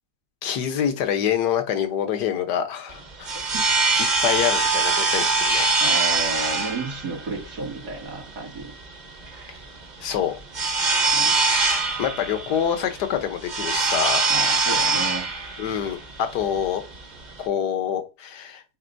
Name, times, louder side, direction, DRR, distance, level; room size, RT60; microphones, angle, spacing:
voice 1, 0.4-3.3 4.2-5.8 10.0-10.3 12.0-14.3 15.6-16.8 17.4-18.6, left 9 dB, 75° left, 8 dB, 1.5 m, -26 dB
sound 1, 2.9-17.5, right 3 dB, 35° right, 0.8 m, -23 dB
voice 2, 5.8-8.7 11.1-11.3 14.3-15.3, right 3 dB, 70° right, -2 dB, 2.8 m, -32 dB
8.9 x 4.0 x 2.6 m, 0.29 s
omnidirectional pair, 1.8 m